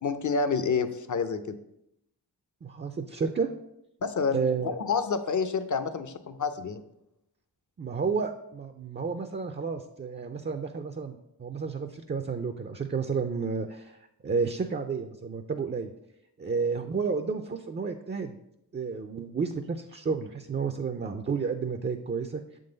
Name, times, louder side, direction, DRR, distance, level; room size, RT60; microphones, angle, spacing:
voice 1, 0.0-1.6 4.0-6.8, left 5 dB, 45° left, 11 dB, 0.6 m, -28 dB
voice 2, 2.6-3.5 4.3-4.7 7.8-15.9 16.4-18.3 18.7-22.4, right 5 dB, 25° right, 7 dB, 0.4 m, -31 dB
7.2 x 3.9 x 3.9 m, 0.82 s
cardioid pair, 40°, 41 cm